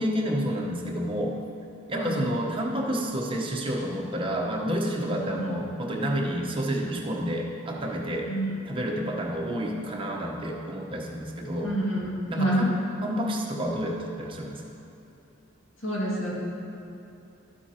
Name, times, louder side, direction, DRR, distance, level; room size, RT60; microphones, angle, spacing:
voice 1, 0.0-1.3 1.9-8.3 8.7-11.7 12.3-12.7 13.0-14.6, equal, 25° right, -1 dB, 1.0 m, -29 dB
voice 2, 5.2-5.5 8.2-8.7 11.6-12.7 15.8-16.3, right 1 dB, 65° left, -5 dB, 2.2 m, -28 dB
12.5 x 8.0 x 2.9 m, 2.9 s
head